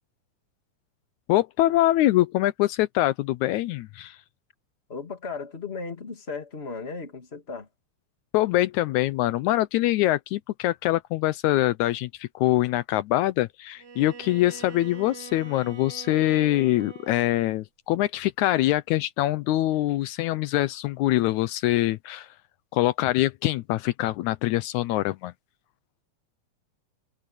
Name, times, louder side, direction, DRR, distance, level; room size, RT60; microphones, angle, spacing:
voice 1, 1.3-4.2 8.3-22.3 22.7-25.3, left 15 dB, 80° left, 2.0 m, -24 dB
voice 2, 4.9-7.7, left 4 dB, 20° left, 2.3 m, -36 dB
Bowed string instrument, 13.8-17.5, right 5 dB, 70° right, 5.5 m, -44 dB
omnidirectional pair, 3.4 m